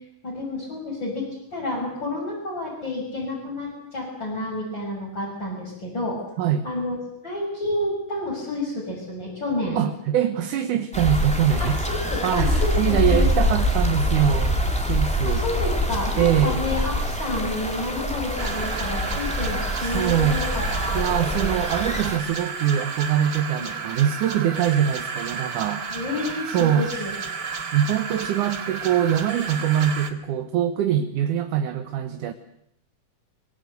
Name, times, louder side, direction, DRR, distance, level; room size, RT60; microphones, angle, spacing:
voice 1, 0.2-1.3 1.5-6.2 6.6-7.0 7.2-9.8 11.6-13.3 15.2-21.3 23.6-23.7 25.9-27.5, left 2 dB, 30° left, -5 dB, 7.3 m, -30 dB
voice 2, 6.4-6.7 9.8-11.8 12.2-12.5 12.8-14.6 14.9-15.4 16.2-16.6 19.8-20.4 20.9-25.8 26.5-26.9 27.7-32.3, right 10 dB, 70° right, 7 dB, 2.5 m, -23 dB
sound 1, 10.9-22.2, left 1 dB, ahead, 2.9 m, -25 dB
sound 2, 18.4-30.1, right 5 dB, 40° right, 1.7 m, -32 dB
24.5 x 22.5 x 8.1 m, 0.75 s
omnidirectional pair, 4.0 m